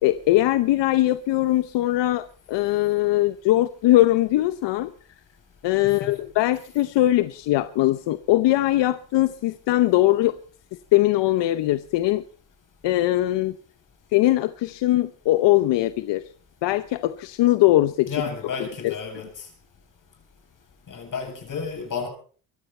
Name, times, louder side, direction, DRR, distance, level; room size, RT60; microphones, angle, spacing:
voice 1, 0.0-4.9 5.6-10.4 10.9-12.2 12.8-13.5 14.1-16.2 16.6-18.1 18.6-18.9, left 15 dB, 85° left, 0.9 m, -21 dB
voice 2, 5.8-6.2 18.1-19.5 20.9-22.1, left 5 dB, 50° left, 7.9 m, -32 dB
23.5 x 14.0 x 4.4 m
cardioid pair, 105°, 42 cm